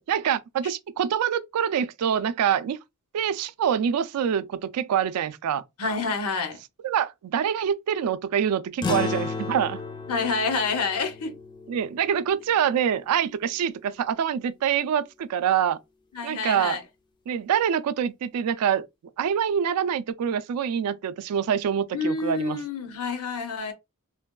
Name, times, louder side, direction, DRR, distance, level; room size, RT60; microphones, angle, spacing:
voice 1, 0.0-2.8 3.1-5.6 6.8-9.8 11.7-15.8 16.2-16.8 17.3-18.9 19.2-22.6, right 8 dB, 85° right, 0.3 m, -25 dB
voice 2, 5.8-6.6 10.1-11.3 16.1-16.8 21.9-23.7, left 4 dB, 80° left, 0.7 m, -28 dB
sound 1, 8.8-13.5, left 3 dB, 20° left, 0.3 m, -34 dB
3.2 x 2.2 x 2.2 m
head